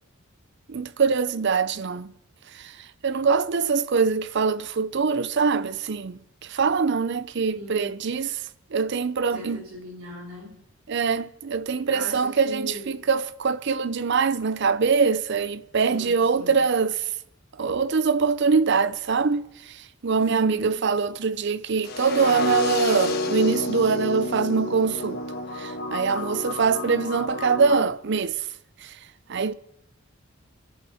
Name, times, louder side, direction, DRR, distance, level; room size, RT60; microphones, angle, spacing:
voice 1, 0.7-2.1 2.5-2.7 3.0-8.4 8.7-9.6 10.9-12.7 13.1-17.1 17.6-25.2 25.6-28.4 28.8-29.0 29.3-29.5, right 5 dB, 55° right, 0.5 m, -23 dB
voice 2, 7.5-8.0 9.3-10.6 11.9-13.1 15.9-16.7 20.2-20.8, equal, 85° right, 3.4 m, -38 dB
sound 1, 21.8-27.8, left 3 dB, 50° left, 1.4 m, -29 dB
28.5 x 11.0 x 4.2 m
head